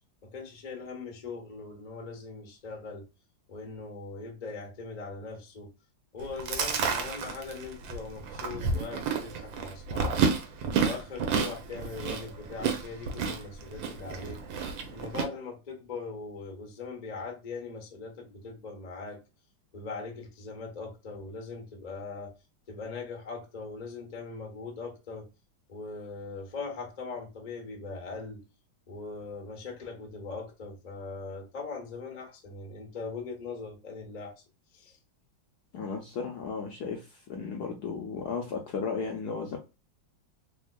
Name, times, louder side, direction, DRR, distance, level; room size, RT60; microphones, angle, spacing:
voice 1, 0.2-3.0 3.5-5.7 6.1-10.3 10.8-14.4 14.9-19.2 19.7-22.3 22.7-25.3 25.7-28.4 28.9-34.3 34.7-35.0, left 4 dB, 35° left, 0.6 m, -40 dB
Chewing mastication, 6.2-15.2, right 5 dB, 70° right, 1.4 m, -31 dB
voice 2, 35.7-39.6, left 5 dB, 65° left, 1.0 m, -35 dB
3.5 x 3.4 x 2.2 m
omnidirectional pair, 2.2 m